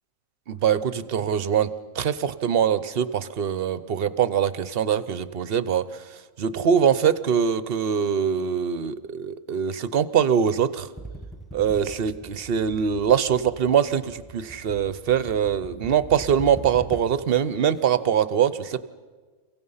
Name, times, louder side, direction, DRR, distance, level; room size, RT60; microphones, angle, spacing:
voice 1, 0.5-5.8 6.4-10.9 11.5-18.9, right 8 dB, 50° right, 15 dB, 0.8 m, -23 dB
sound 1, 11.0-17.3, right 2 dB, ahead, 0.4 m, -41 dB
30.0 x 16.5 x 5.6 m, 1.4 s
omnidirectional pair, 1.5 m